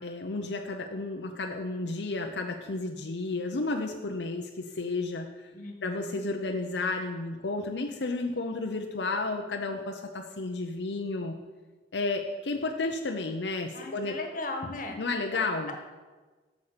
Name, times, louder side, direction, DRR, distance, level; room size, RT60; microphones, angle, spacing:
voice 1, 0.0-5.5 5.8-11.3 11.9-14.2 14.9-15.7, left 3 dB, 80° left, 3 dB, 0.7 m, -32 dB
voice 2, 5.5-6.3 13.7-15.0, left 2 dB, 50° left, 4 dB, 1.5 m, -37 dB
8.5 x 7.3 x 6.7 m, 1.3 s
head